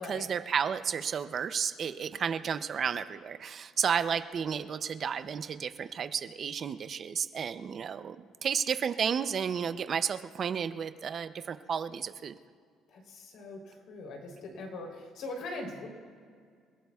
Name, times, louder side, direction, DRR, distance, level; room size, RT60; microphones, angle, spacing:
voice 1, 0.0-8.2 8.4-12.4, right 7 dB, 40° right, 11 dB, 0.5 m, -32 dB
voice 2, 12.9-15.9, left 2 dB, 65° left, 1 dB, 3.4 m, -41 dB
28.5 x 16.0 x 2.4 m, 2.1 s
cardioid pair, 145°, 0 cm